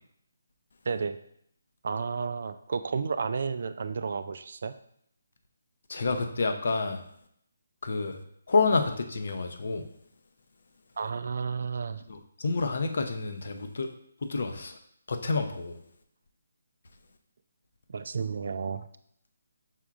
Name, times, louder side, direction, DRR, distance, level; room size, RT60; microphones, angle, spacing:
voice 1, 0.9-1.2 1.8-4.7 11.0-12.0 17.9-18.9, right 5 dB, 60° right, 11 dB, 0.3 m, -32 dB
voice 2, 5.9-7.0 7.8-8.2 8.5-9.8 12.4-13.9 14.3-14.7 15.1-15.7, left 4 dB, 60° left, 6 dB, 0.6 m, -28 dB
5.8 x 3.6 x 2.4 m, 0.70 s
figure-of-eight pair, 150°, 0 cm